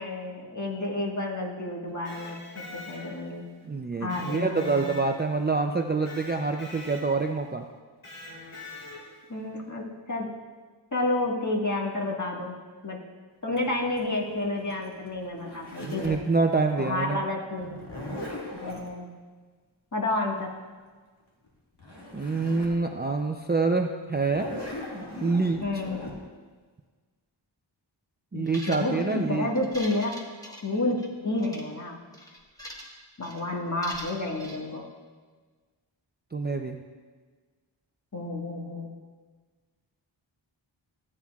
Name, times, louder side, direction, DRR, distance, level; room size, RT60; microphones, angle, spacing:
voice 1, 0.0-3.5 4.0-4.9 9.3-10.4 10.9-12.6 12.8-13.0 13.4-16.2 16.8-17.8 18.6-19.1 19.9-20.5 25.6-26.1 28.3-30.1 30.5-32.0 33.2-34.9 38.1-38.9, left 2 dB, 35° left, -2 dB, 1.6 m, -30 dB
Electric guitar, 1.9-3.4 4.1-5.5 6.0-7.3 8.0-9.3, left 2 dB, 80° left, 2.9 m, -44 dB
voice 2, 3.6-7.7 15.8-17.2 22.1-24.5 25.2-25.6 28.3-29.5 36.3-36.8, right 3 dB, 20° right, 3 dB, 0.4 m, -26 dB
Zipper (clothing), 13.6-16.3 17.6-18.9 21.5-21.6 21.8-22.8 23.3-23.4 24.1-26.1, left 1 dB, 55° left, 2.0 m, -39 dB
sound 1, 28.5-29.1 29.6-31.1 31.4-31.6 32.1-33.0 33.2-33.4 33.8-34.6, equal, 5° left, 1.3 m, -42 dB
14.5 x 8.6 x 2.4 m, 1.4 s
wide cardioid pair, 60°, 48 cm